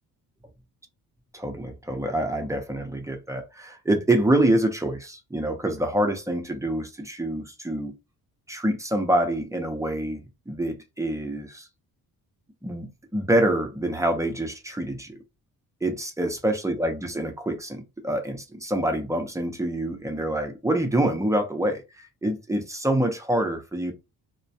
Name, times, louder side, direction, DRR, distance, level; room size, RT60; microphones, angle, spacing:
voice 1, 1.3-7.9 8.5-11.7 12.6-15.2 15.8-23.9, right 1 dB, 10° right, 0.6 m, -26 dB
2.2 x 2.2 x 2.7 m
supercardioid pair, 70°, 39 cm